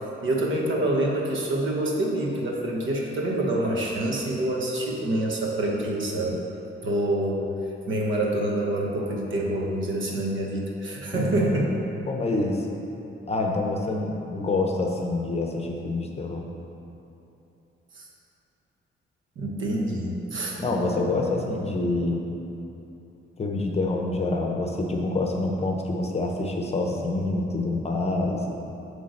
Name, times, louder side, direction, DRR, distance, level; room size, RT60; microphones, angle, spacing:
voice 1, 0.2-6.4 6.8-7.5 7.9-11.7 17.9-18.1 19.4-20.6, right 1 dB, 70° right, -1 dB, 1.2 m, -26 dB
voice 2, 11.1-11.5 12.1-12.7 13.3-16.4 20.6-22.3 23.4-28.6, left 2 dB, 30° left, 1 dB, 0.7 m, -26 dB
8.4 x 3.3 x 6.5 m, 2.9 s
cardioid pair, 135°, 21 cm